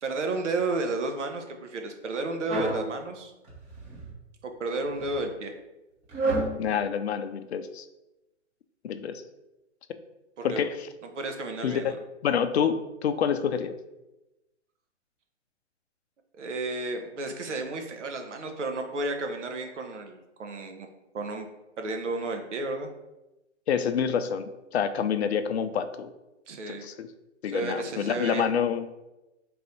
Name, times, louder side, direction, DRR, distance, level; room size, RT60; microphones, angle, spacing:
voice 1, 0.0-3.3 4.4-5.5 10.4-10.7 11.0-12.0 16.4-20.9 21.1-21.5 21.8-22.9 26.5-26.9 27.4-28.4, right 2 dB, 70° right, 5 dB, 0.9 m, -32 dB
sound 1, 2.5-2.9 3.4-4.1 4.8-5.2 6.1-6.5, right 2 dB, 20° right, 0.9 m, -29 dB
voice 2, 6.6-7.9 8.8-9.2 10.4-10.9 11.6-11.9 12.2-13.7 23.7-26.1 26.7-27.1 27.4-28.9, left 7 dB, 60° left, 10 dB, 0.5 m, -27 dB
4.0 x 2.6 x 4.3 m, 0.98 s
hypercardioid pair, 135°, 37 cm